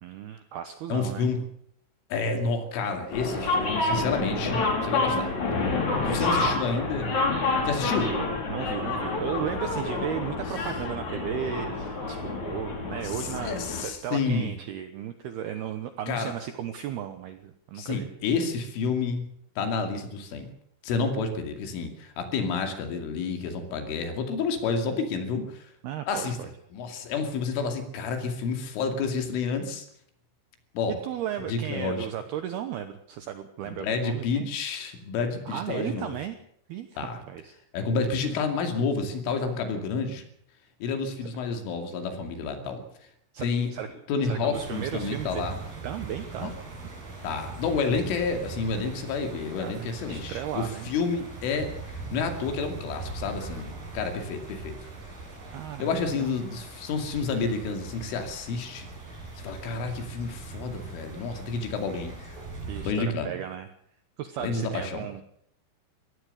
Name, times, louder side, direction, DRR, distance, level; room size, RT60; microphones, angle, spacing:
voice 1, 0.0-1.3 5.9-7.0 7.9-18.1 25.8-26.5 30.9-34.5 35.5-36.4 36.7-37.6 41.2-41.3 43.3-43.9 44.2-45.4 45.8-46.5 49.6-50.9 55.5-56.3 62.7-63.7 64.2-65.2, right 10 dB, 75° right, 9 dB, 2.5 m, -35 dB
voice 2, 0.9-1.4 2.1-5.3 6.1-7.1 7.7-8.1 9.9-10.1 13.0-14.5 16.1-16.3 17.8-19.3 19.6-20.5 20.8-25.7 26.1-26.4 26.7-29.9 30.7-31.0 31.5-32.1 33.6-36.1 37.0-37.2 37.7-40.2 40.8-42.8 43.4-43.7 44.1-45.6 46.4-46.5 47.2-54.8 55.8-58.9 59.4-62.4 62.8-63.3 64.4-65.0, left 4 dB, 75° left, 6 dB, 4.9 m, -29 dB
sound 1, 3.1-13.8, left 3 dB, 40° left, 5.1 m, -28 dB
sound 2, 44.5-62.9, right 3 dB, 45° right, 8.0 m, -41 dB
23.0 x 16.5 x 6.7 m, 0.68 s
omnidirectional pair, 5.7 m